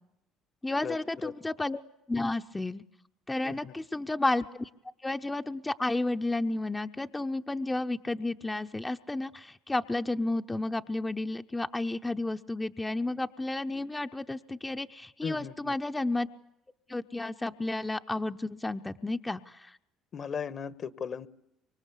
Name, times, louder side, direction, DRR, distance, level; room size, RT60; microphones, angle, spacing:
voice 1, 0.6-1.8 2.1-2.8 3.3-4.7 5.0-16.3 16.9-19.8, left 2 dB, 15° left, 6 dB, 0.9 m, -32 dB
voice 2, 3.4-3.7 15.2-15.8 20.1-21.3, left 6 dB, 45° left, 16 dB, 1.4 m, -37 dB
25.5 x 23.5 x 8.5 m, 0.83 s
supercardioid pair, 70°, 0 cm